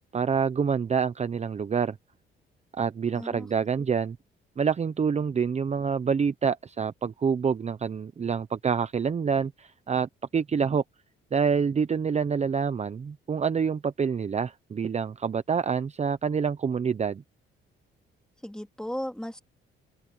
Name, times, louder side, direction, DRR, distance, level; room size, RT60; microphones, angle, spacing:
voice 1, 0.1-2.0 2.7-4.2 4.6-10.8 11.3-17.2, right 6 dB, 35° right, 0.8 m, -27 dB
voice 2, 3.1-3.5 18.4-19.4, equal, 5° left, 3.7 m, -35 dB
open air
cardioid pair, 90°, 20 cm